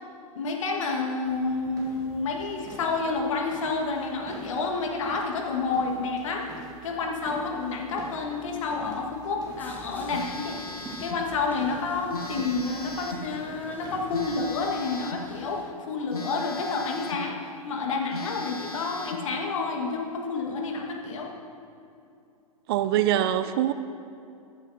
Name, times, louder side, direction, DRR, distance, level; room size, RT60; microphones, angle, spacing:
voice 1, 0.3-6.5 6.8-17.4 17.6-21.3 23.1-23.2, left 4 dB, 55° left, 2 dB, 1.6 m, -29 dB
sound 1, 1.2-14.7, right 2 dB, 20° right, 1.6 m, -46 dB
sound 2, 9.6-15.7, left 1 dB, 10° left, 1.0 m, -49 dB
Telephone, 10.1-11.3 12.1-13.3 14.1-15.3 16.1-17.3 17.7-17.8 18.1-19.3, left 2 dB, 80° left, 1.1 m, -39 dB
voice 2, 22.7-23.7, right 12 dB, 40° right, 12 dB, 0.4 m, -23 dB
14.0 x 10.5 x 2.7 m, 2.6 s
figure-of-eight pair, 105°, 19 cm